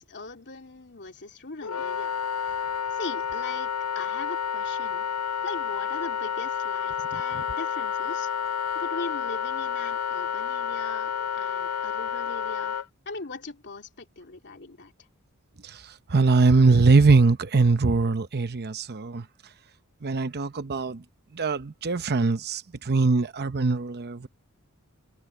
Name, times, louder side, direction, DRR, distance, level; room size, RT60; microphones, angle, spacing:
voice 1, 0.0-2.1 2.4-2.6 2.9-5.1 5.4-8.3 8.7-12.8 13.0-14.9, left 3 dB, 55° left, 3.0 m, -40 dB
Wind instrument woodwind instrument, 1.6-12.8, left 7 dB, 75° left, 0.5 m, -30 dB
voice 2, 7.1-7.4 15.6-15.8 16.1-19.2 20.0-21.0 21.3-24.3, right 3 dB, 45° right, 0.8 m, -22 dB
head